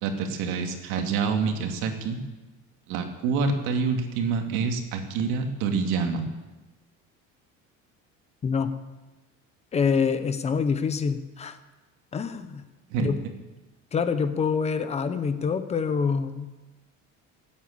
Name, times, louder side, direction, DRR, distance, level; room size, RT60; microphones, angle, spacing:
voice 1, 0.0-2.2 2.9-6.2 12.9-13.1, right 5 dB, 90° right, 4 dB, 2.5 m, -27 dB
voice 2, 9.7-11.6 12.1-12.6 13.0-13.2 13.9-16.5, left 5 dB, 20° left, 10 dB, 0.7 m, -26 dB
18.5 x 8.7 x 8.7 m, 1.2 s
cardioid pair, 180°, 31 cm